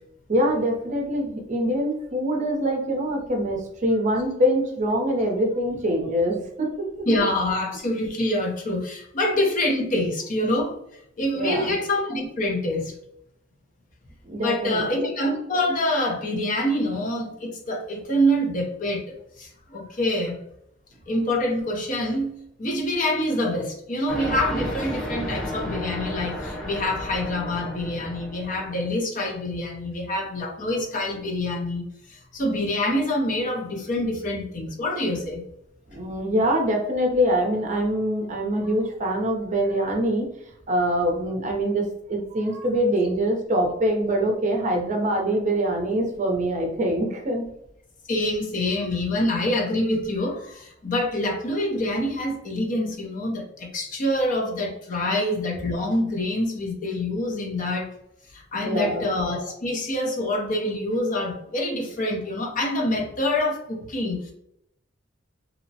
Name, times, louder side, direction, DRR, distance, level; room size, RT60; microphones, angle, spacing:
voice 1, 0.3-6.9 11.3-11.7 14.2-15.1 35.9-40.3 40.7-47.5 55.1-55.2 58.5-59.0, equal, 40° right, 1 dB, 0.6 m, -24 dB
voice 2, 7.1-10.7 11.2-12.9 14.4-20.4 21.1-35.4 48.1-57.9 58.3-64.3, left 1 dB, 40° left, 0 dB, 0.6 m, -26 dB
sound 1, 24.1-28.8, equal, 85° left, 1.2 m, -32 dB
2.8 x 2.0 x 2.6 m, 0.75 s
head